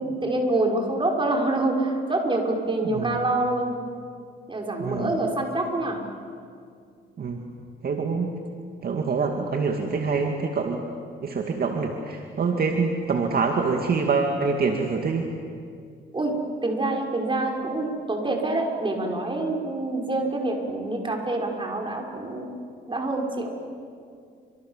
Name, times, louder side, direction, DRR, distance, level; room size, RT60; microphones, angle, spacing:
voice 1, 0.0-3.7 4.5-6.0 16.1-16.3 16.6-22.5 22.9-23.5, right 2 dB, 25° right, 1 dB, 5.8 m, -26 dB
voice 2, 4.8-5.1 7.2-7.4 7.8-8.3 8.8-10.8 11.2-15.3, right 4 dB, 50° right, 3 dB, 2.4 m, -25 dB
30.0 x 26.5 x 7.5 m, 2.3 s
cardioid pair, 90°, 20 cm